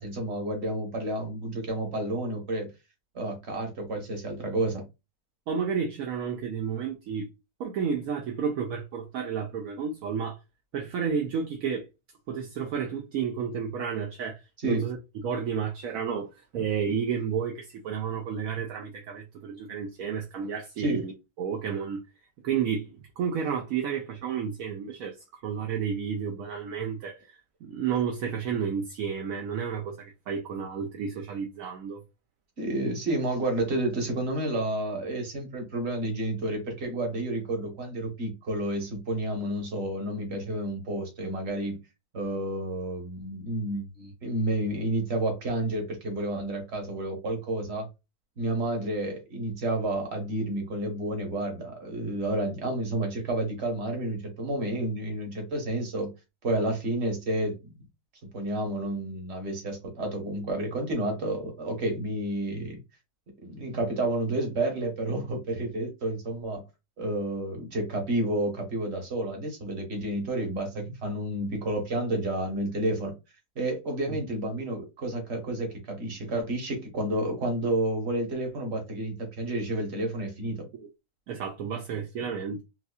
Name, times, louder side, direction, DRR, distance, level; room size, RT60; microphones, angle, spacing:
voice 1, 0.0-2.7 3.1-4.8 14.6-14.8 20.8-21.0 32.6-41.8 42.1-47.9 48.4-56.1 56.4-57.7 58.2-62.8 63.4-66.6 67.0-73.1 73.5-80.7, right 1 dB, 45° right, 1.4 m, -30 dB
voice 2, 5.5-7.3 7.6-10.4 10.7-11.9 12.3-15.0 15.2-21.1 21.4-22.0 22.4-32.0 74.1-74.2 80.8-80.9 81.3-82.6, right 7 dB, 70° right, 1.0 m, -31 dB
4.0 x 2.6 x 2.3 m
omnidirectional pair, 1.6 m